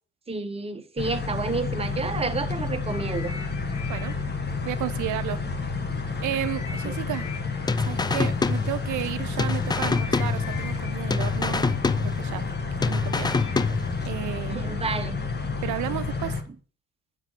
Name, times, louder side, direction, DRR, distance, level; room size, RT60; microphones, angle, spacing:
voice 1, 0.3-3.3 6.8-7.0 14.5-15.2, right 4 dB, 20° right, 1.0 m, -30 dB
sound 1, 1.0-16.4, left 4 dB, 35° left, 1.4 m, -30 dB
sound 2, 2.8-5.7 6.2-15.2 15.9-16.1, left 6 dB, 75° left, 2.0 m, -45 dB
voice 2, 4.6-5.4 6.2-7.3 7.8-12.5 12.8-13.4 14.1-14.7 15.6-16.4, right 13 dB, 80° right, 0.6 m, -33 dB
sound 3, 7.7-9.1 9.4-10.8 11.1-12.5 12.8-14.1, left 4 dB, 15° left, 0.3 m, -26 dB
8.9 x 4.0 x 6.0 m
cardioid pair, 90°, 30 cm